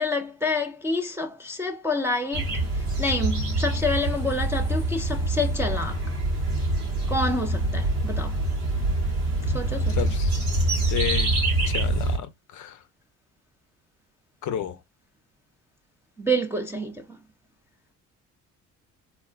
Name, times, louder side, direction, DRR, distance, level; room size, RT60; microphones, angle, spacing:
voice 1, 0.0-6.0 7.1-8.4 9.5-10.0 16.2-17.0, left 1 dB, 5° right, 0.4 m, -28 dB
sound 1, 2.3-12.2, right 2 dB, 90° right, 0.9 m, -25 dB
voice 2, 9.9-10.5 10.9-11.3 11.7-12.8 14.4-14.8, left 10 dB, 45° left, 0.6 m, -31 dB
3.6 x 2.3 x 2.2 m
figure-of-eight pair, 45°, 44 cm